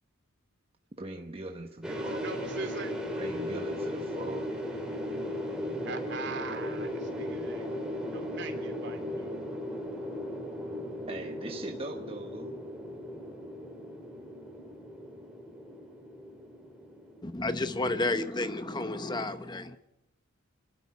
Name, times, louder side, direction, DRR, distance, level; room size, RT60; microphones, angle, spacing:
voice 1, 1.0-2.3 3.2-4.5 11.1-12.6, right 2 dB, 25° right, 4 dB, 1.1 m, -40 dB
sound 1, 1.8-18.0, left 1 dB, 5° right, 3.4 m, -37 dB
voice 2, 1.9-3.0 5.8-7.7 8.1-9.4, right 3 dB, 55° right, 6 dB, 3.2 m, -41 dB
voice 3, 17.2-19.8, left 2 dB, 20° left, 10 dB, 0.8 m, -31 dB
26.5 x 12.5 x 9.4 m, 0.95 s
head